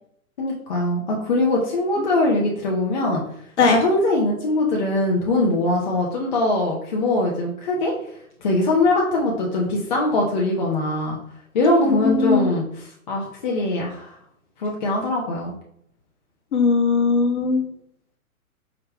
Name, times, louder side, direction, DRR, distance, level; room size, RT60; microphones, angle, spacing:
voice 1, 0.4-3.2 3.7-7.9 8.4-11.2 11.5-12.6 13.1-14.2 14.6-15.6, left 2 dB, 30° left, -2 dB, 0.5 m, -22 dB
voice 2, 11.9-12.5 16.5-17.6, left 4 dB, 50° left, 3 dB, 0.9 m, -19 dB
4.7 x 2.2 x 3.3 m, 0.70 s
figure-of-eight pair, 125°, 44 cm